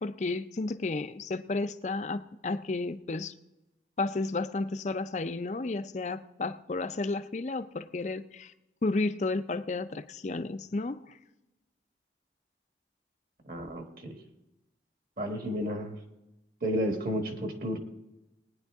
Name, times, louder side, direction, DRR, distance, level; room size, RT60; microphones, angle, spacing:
voice 1, 0.0-3.3 4.0-8.5 8.8-11.1, left 3 dB, 40° left, 13 dB, 0.5 m, -32 dB
voice 2, 13.4-14.2 15.2-15.9 16.6-17.8, equal, 50° right, 4 dB, 1.4 m, -32 dB
19.5 x 10.0 x 3.5 m, 1.0 s
head